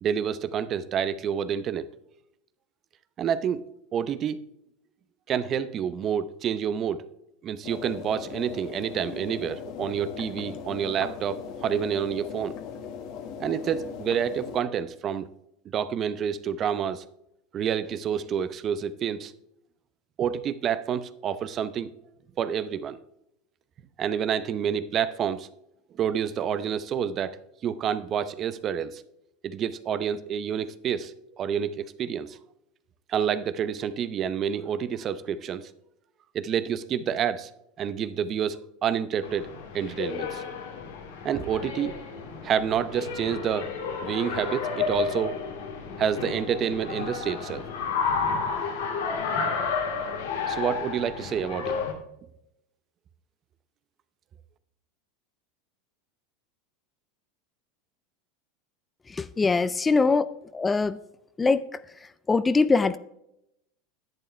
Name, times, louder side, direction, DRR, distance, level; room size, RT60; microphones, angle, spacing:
voice 1, 0.0-1.9 3.2-3.6 3.9-4.4 5.3-7.1 7.4-12.5 13.4-15.3 15.7-17.0 17.5-19.3 20.2-21.9 22.4-23.0 24.0-25.5 26.0-27.4 27.6-29.0 29.4-32.4 33.1-35.7 36.3-37.5 37.8-39.5 39.7-40.4 41.2-42.0 42.4-43.7 44.0-45.4 46.0-47.6 50.5-51.8, right 8 dB, 35° right, 14 dB, 0.7 m, -28 dB
sound 1, 7.6-14.6, left 7 dB, 60° left, 1.4 m, -39 dB
sound 2, 39.2-51.9, left 5 dB, 85° left, 2.1 m, -31 dB
voice 2, 59.1-60.2 60.5-61.0 61.4-61.6 62.3-63.0, left 4 dB, 15° left, 15 dB, 0.4 m, -22 dB
10.5 x 8.6 x 3.3 m, 0.81 s
supercardioid pair, 115°, 0 cm